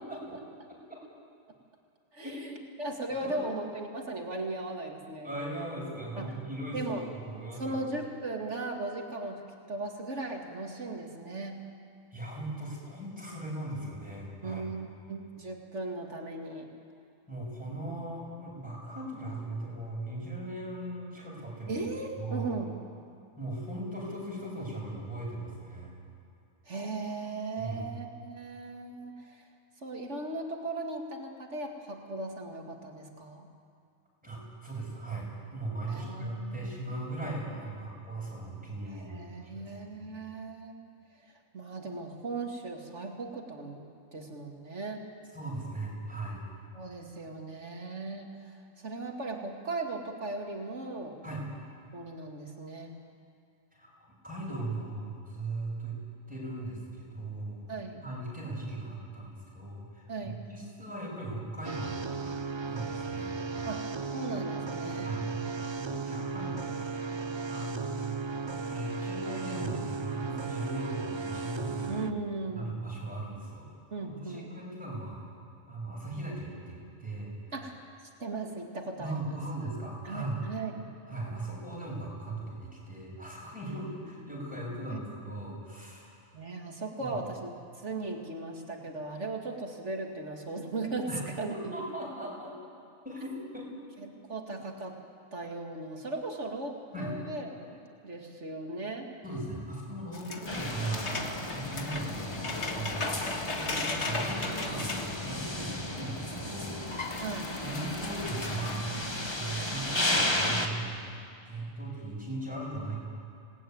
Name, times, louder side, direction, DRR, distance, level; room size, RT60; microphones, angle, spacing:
voice 1, 2.1-2.5 2.8-5.3 6.2-6.3 6.7-7.1 7.5-11.6 14.4-16.7 21.7-22.7 26.7-29.5 29.8-33.5 35.9-36.9 38.8-40.9 41.2-45.0 46.7-51.2 51.9-52.9 57.7-58.0 60.1-60.4 63.7-65.1 71.8-72.8 73.9-74.5 77.5-77.8 78.2-79.4 80.0-80.7 84.4-85.0 86.3-87.5 87.8-91.1 91.4-91.7 94.0-95.0 95.3-99.1 100.4-100.5 107.2-107.6, right 2 dB, 55° right, 2 dB, 2.6 m, -38 dB
voice 2, 5.2-6.8 7.1-7.8 12.1-14.6 17.3-21.8 22.1-22.5 23.4-25.9 27.6-27.8 34.2-39.2 39.4-39.7 40.0-40.1 45.3-46.4 51.2-51.4 53.7-56.0 56.3-57.7 58.0-62.3 62.6-63.7 65.0-65.2 65.7-66.6 67.0-68.1 68.7-72.0 72.5-73.7 74.0-75.2 75.7-77.4 79.0-80.5 81.1-86.2 87.0-87.2 91.1-91.2 91.5-92.6 93.0-93.9 96.9-97.1 99.2-103.2 103.5-106.8 107.6-108.9 109.3-111.0 111.4-113.0, right 2 dB, 5° right, -4 dB, 7.6 m, -38 dB
sound 1, 61.6-72.1, right 4 dB, 30° right, 0.5 m, -36 dB
sound 2, 100.1-106.0 106.4-106.5 106.7-108.8, left 3 dB, 55° left, 2.0 m, -37 dB
sound 3, 100.5-110.7, left 1 dB, 20° left, 1.7 m, -34 dB
27.5 x 19.0 x 9.5 m, 2.4 s
omnidirectional pair, 1.4 m